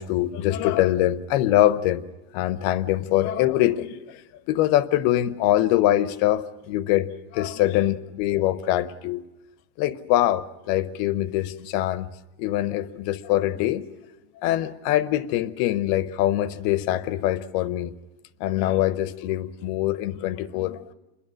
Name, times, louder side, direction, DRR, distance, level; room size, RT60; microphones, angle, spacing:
voice 1, 0.0-2.0 2.3-4.2 4.5-9.2 9.8-12.1 12.4-13.8 14.4-17.9 18.4-20.9, left 13 dB, 75° left, 2.8 m, -23 dB
29.0 x 22.0 x 6.3 m
omnidirectional pair, 4.7 m